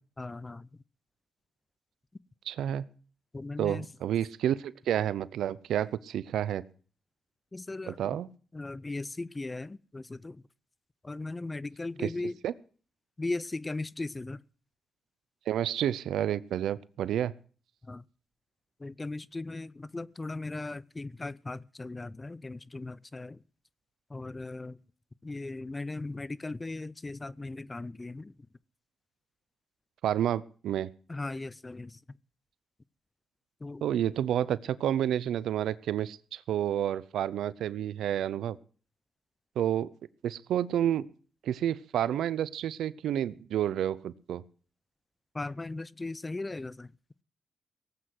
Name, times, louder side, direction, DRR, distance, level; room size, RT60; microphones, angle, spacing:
voice 1, 0.2-0.8 3.3-3.9 7.5-8.2 8.5-10.4 11.0-12.4 13.2-14.4 17.8-18.1 18.8-23.4 24.1-24.8 25.2-28.3 31.1-32.2 33.6-33.8 45.3-46.9, left 2 dB, 25° left, 0.7 m, -38 dB
voice 2, 2.5-2.9 3.6-6.6 7.9-8.3 12.4-12.5 15.5-17.3 30.0-30.9 33.8-38.6 39.6-39.9 40.2-41.1 41.4-44.4, right 10 dB, 80° right, 0.6 m, -30 dB
18.5 x 8.5 x 7.8 m
supercardioid pair, 55°, 0 cm